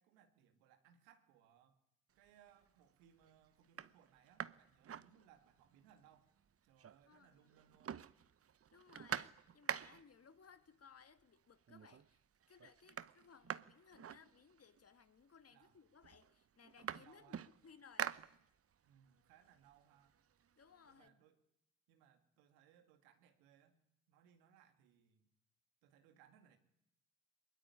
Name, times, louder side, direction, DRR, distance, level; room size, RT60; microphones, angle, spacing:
voice 1, 0.0-1.8 2.2-6.3 6.6-8.1 15.5-15.8 17.0-17.5 18.8-20.2 20.8-21.4 21.9-23.8 24.1-25.3 25.8-26.6, right 9 dB, 85° right, 2.3 m, -68 dB
sound 1, 2.2-2.7 3.2-3.3 3.6-5.7 6.1-6.2 6.4-7.2 7.5-10.2 11.2-11.3 11.7-12.2 12.4-14.8 15.6-15.7 16.0-18.9 19.3-21.0, right 8 dB, 40° right, 0.9 m, -47 dB
voice 2, 7.1-7.5 8.7-12.2 12.5-17.4 17.6-18.4 20.6-21.2, left 6 dB, 45° left, 2.0 m, -63 dB
22.0 x 21.0 x 9.9 m
hypercardioid pair, 50°, 35 cm